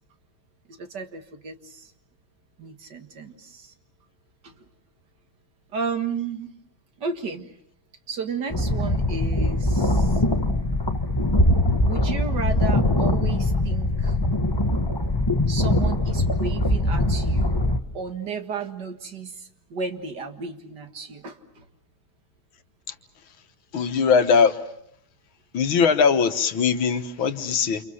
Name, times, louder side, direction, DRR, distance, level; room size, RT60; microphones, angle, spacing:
voice 1, 0.7-1.9 2.6-3.7 4.4-4.6 5.7-6.5 7.0-7.5 8.1-10.2 11.8-14.2 15.5-17.6 17.9-21.7, right 5 dB, 60° right, 7 dB, 2.3 m, -33 dB
sound 1, 8.5-17.8, left 1 dB, 15° left, 0.9 m, -22 dB
voice 2, 23.7-24.6 25.5-27.8, left 6 dB, 85° left, 8 dB, 2.1 m, -20 dB
29.5 x 27.5 x 6.4 m, 0.73 s
omnidirectional pair, 2.2 m